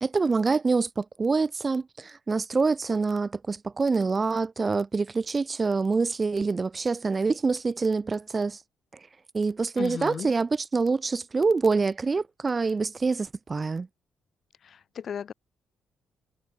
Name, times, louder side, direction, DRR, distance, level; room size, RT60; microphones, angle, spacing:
voice 1, 0.0-8.6 9.3-13.9, right 4 dB, 30° right, 0.5 m, -26 dB
voice 2, 9.8-10.3 14.6-15.3, left 8 dB, 55° left, 7.6 m, -35 dB
cardioid pair, 90°, 0 cm